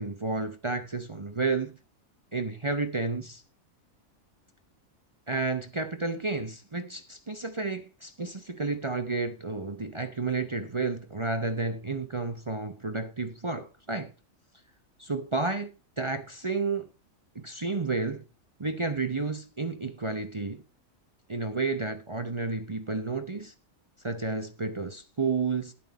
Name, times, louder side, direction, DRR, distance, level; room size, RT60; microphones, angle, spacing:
voice 1, 0.0-1.8 2.3-3.4 5.3-14.1 15.0-15.7 16.0-16.9 17.3-18.2 18.6-20.6 21.3-23.5 24.0-25.7, right 3 dB, 30° right, 0.7 m, -31 dB
11.0 x 8.5 x 4.0 m
omnidirectional pair, 1.4 m